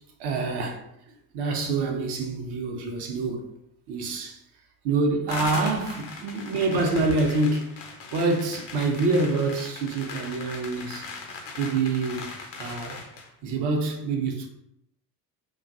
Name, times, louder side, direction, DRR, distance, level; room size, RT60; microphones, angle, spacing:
voice 1, 0.2-0.8 1.3-3.5 3.9-4.4 4.8-7.8 8.1-11.1 11.6-12.2 12.6-13.0 13.4-14.5, right 3 dB, 55° right, 0.7 m, -26 dB
sound 1, 5.3-13.3, left 4 dB, 55° left, 0.7 m, -39 dB
2.5 x 2.3 x 2.5 m
hypercardioid pair, 65°, 49 cm